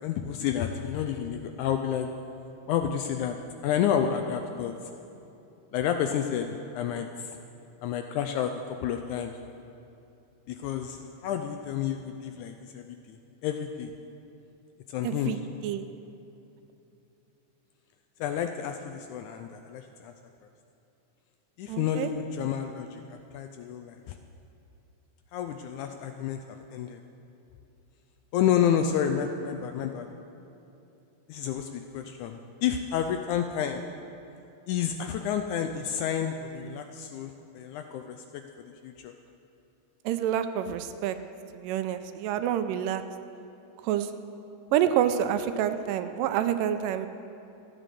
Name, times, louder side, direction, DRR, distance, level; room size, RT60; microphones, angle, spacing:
voice 1, 0.0-2.1 2.7-3.4 3.6-4.7 5.7-7.3 7.8-8.5 8.8-9.4 10.5-13.2 13.4-13.9 14.9-15.4 18.2-20.1 21.6-24.2 25.3-26.4 26.7-27.0 28.3-30.1 31.3-33.8 34.7-38.4 38.8-39.1, left 9 dB, 80° left, 6 dB, 1.8 m, -30 dB
voice 2, 15.0-15.9 21.7-22.1 40.1-41.2 41.5-43.0 43.8-44.1 44.7-47.1, right 10 dB, 85° right, 10 dB, 2.2 m, -28 dB
14.0 x 9.0 x 6.7 m, 2.8 s
omnidirectional pair, 3.9 m